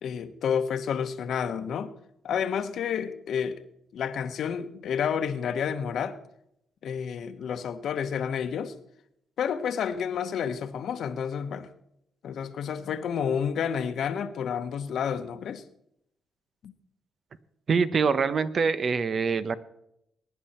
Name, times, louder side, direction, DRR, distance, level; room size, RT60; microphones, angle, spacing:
voice 1, 0.0-1.9 2.2-3.6 3.9-6.2 6.8-8.7 9.4-11.7 12.2-15.6 16.6-16.7, left 7 dB, 65° left, 1.2 m, -30 dB
voice 2, 17.7-19.6, right 5 dB, 45° right, 0.9 m, -24 dB
20.0 x 10.5 x 4.4 m
cardioid pair, 90°, 0 cm